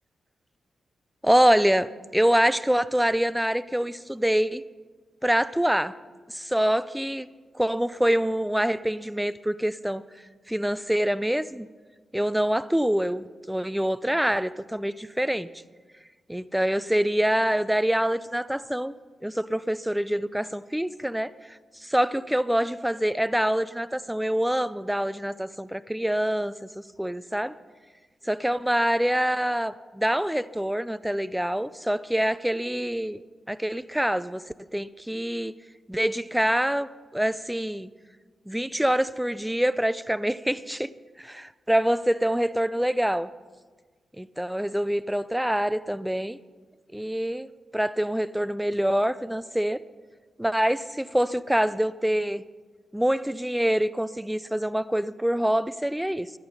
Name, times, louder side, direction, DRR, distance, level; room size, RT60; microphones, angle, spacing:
voice 1, 1.2-4.6 5.2-5.9 6.3-7.3 7.5-10.0 10.5-11.7 12.1-15.5 16.3-18.9 19.2-21.6 21.9-26.5 27.0-27.5 28.3-33.2 33.5-34.4 34.7-35.5 35.9-37.9 38.5-40.9 41.2-43.3 44.2-46.4 46.9-49.8 50.4-52.4 52.9-56.3, equal, 5° right, 17 dB, 0.5 m, -25 dB
12.5 x 12.0 x 5.5 m, 1.4 s
supercardioid pair, 40°, 0 cm